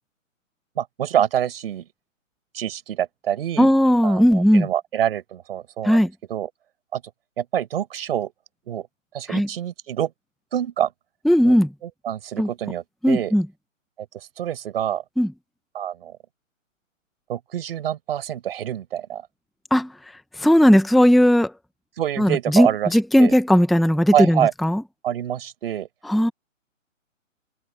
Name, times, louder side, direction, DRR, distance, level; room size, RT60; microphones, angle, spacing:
voice 1, 0.8-1.9 2.5-3.7 4.0-6.0 6.3-6.5 6.9-7.0 7.4-8.3 8.7-8.9 9.1-10.1 10.5-10.9 11.4-11.6 11.8-13.3 14.1-15.0 15.7-16.1 17.3-19.3 22.0-22.9 23.2-23.3 24.1-24.5 25.0-25.9, right 10 dB, 45° right, 4.9 m, -26 dB
voice 2, 3.6-4.7 5.8-6.1 9.3-9.5 11.3-11.7 12.4-12.5 13.0-13.5 15.2-15.3 19.7-19.9 20.4-21.5 22.2-24.8 26.1-26.3, equal, ahead, 0.9 m, -17 dB
hypercardioid pair, 155°, 39 cm